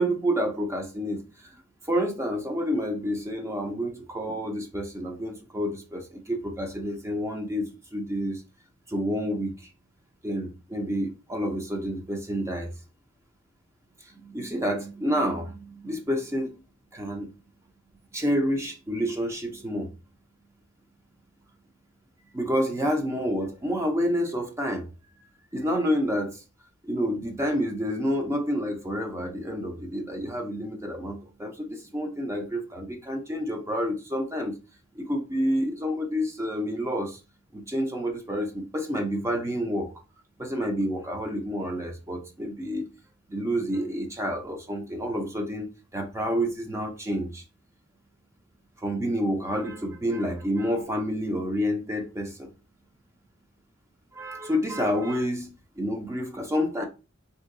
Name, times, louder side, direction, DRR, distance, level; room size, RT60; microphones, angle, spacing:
voice 1, 0.0-1.6 1.9-8.4 8.9-9.7 10.2-12.7 14.1-16.6 16.9-17.3 18.1-19.9 22.3-24.9 25.5-26.4 26.8-34.5 35.0-37.2 37.5-39.9 40.4-42.9 43.3-47.4 48.8-52.5 54.1-55.5 55.8-56.8, equal, 15° right, 0.5 m, -29 dB
3.7 x 2.7 x 2.5 m
head